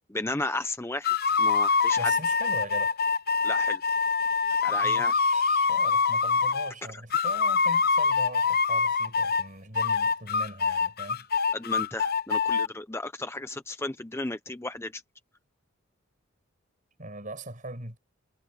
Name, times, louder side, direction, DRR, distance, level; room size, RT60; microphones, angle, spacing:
voice 1, 0.1-2.1 3.4-3.8 4.6-5.1 6.9-7.0 11.5-15.0, left 2 dB, 10° left, 0.7 m, -34 dB
sound 1, 1.0-6.7 7.1-9.5 9.7-12.7, left 5 dB, 45° left, 0.8 m, -25 dB
voice 2, 2.0-3.0 4.7-11.3 17.0-18.0, right 2 dB, 40° right, 5.8 m, -41 dB
head